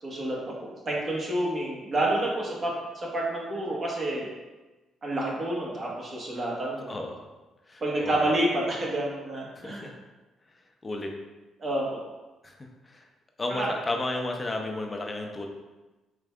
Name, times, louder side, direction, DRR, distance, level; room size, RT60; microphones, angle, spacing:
voice 1, 0.0-4.3 5.0-6.9 7.8-9.9 11.6-12.0 13.5-13.7, right 1 dB, 40° right, -3 dB, 1.2 m, -29 dB
voice 2, 6.9-7.3 7.7-8.2 9.6-9.9 10.8-11.1 12.4-13.0 13.4-15.5, left 2 dB, 25° left, 2 dB, 0.6 m, -33 dB
5.0 x 3.2 x 2.3 m, 1.1 s
cardioid pair, 90°, 0 cm